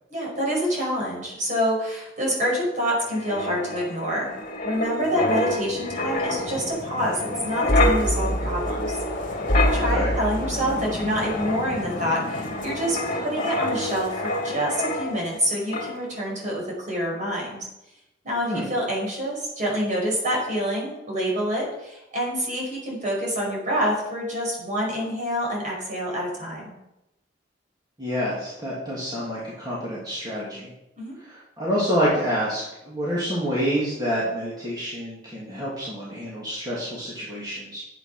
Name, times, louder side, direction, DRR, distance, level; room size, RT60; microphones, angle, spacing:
voice 1, 0.1-4.3 4.6-8.9 9.7-17.6 18.2-26.7 31.0-31.1, equal, 45° right, -2 dB, 5.4 m, -27 dB
Wind, 3.0-15.4 15.7-16.0, left 1 dB, 50° left, 2.3 m, -26 dB
voice 2, 9.7-10.1 18.5-18.7 28.0-30.7 31.2-37.8, equal, 25° right, -7 dB, 2.8 m, -28 dB
10.0 x 8.8 x 5.8 m, 0.89 s
head